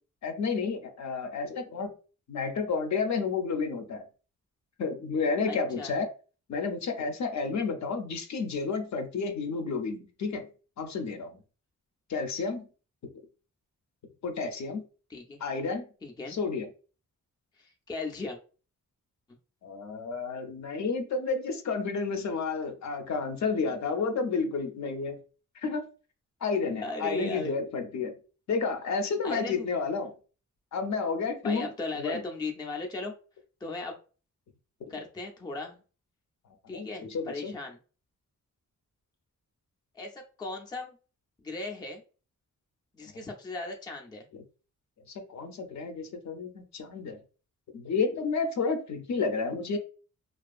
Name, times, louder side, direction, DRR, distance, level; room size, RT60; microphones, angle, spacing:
voice 1, 0.2-1.9 2.3-4.0 4.8-6.1 6.5-10.5 10.8-11.4 12.1-12.7 14.2-14.8 15.4-15.9 16.3-16.7 19.6-25.2 25.6-25.9 26.4-28.1 28.5-30.1 30.7-31.7 31.9-32.2 36.7-37.5 45.3-47.2 47.7-49.8, left 4 dB, 65° left, 6 dB, 0.5 m, -31 dB
voice 2, 5.4-5.9 15.1-15.4 16.0-16.4 17.6-18.4 26.8-27.6 29.2-29.7 31.4-33.1 33.6-34.0 34.9-35.8 36.7-37.8 40.0-41.0 41.4-42.0 42.9-44.3, left 3 dB, 15° left, 2 dB, 0.3 m, -37 dB
2.5 x 2.4 x 2.3 m, 0.36 s
wide cardioid pair, 135°, 31 cm